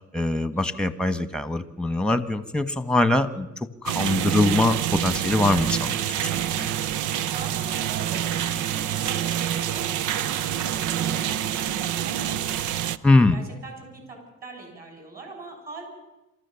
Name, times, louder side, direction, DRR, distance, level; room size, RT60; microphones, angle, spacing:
voice 1, 0.1-3.5 3.8-6.7 13.0-13.4, left 2 dB, 5° left, 12 dB, 1.4 m, -23 dB
sound 1, 3.9-13.0, right 11 dB, 80° right, 0.7 m, -27 dB
voice 2, 7.2-12.9 13.3-15.8, right 3 dB, 30° right, 3 dB, 7.9 m, -42 dB
27.5 x 14.0 x 7.1 m, 0.98 s
cardioid pair, 90°, 30 cm